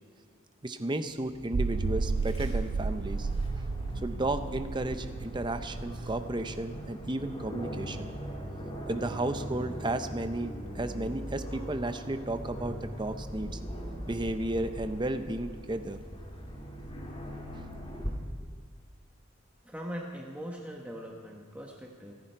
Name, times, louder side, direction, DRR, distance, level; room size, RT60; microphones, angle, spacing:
voice 1, 0.6-3.3 3.6-3.7 4.0-8.1 8.9-13.6 14.1-16.0 17.5-18.0, right 1 dB, 20° right, 9 dB, 0.7 m, -33 dB
sound 1, 1.4-7.9, right 4 dB, 90° right, 0.5 m, -33 dB
Aircraft, 1.7-18.1, equal, 25° left, 2.4 m, -40 dB
voice 2, 19.6-22.1, equal, 5° right, -1 dB, 1.2 m, -41 dB
26.5 x 10.0 x 4.6 m, 2.1 s
head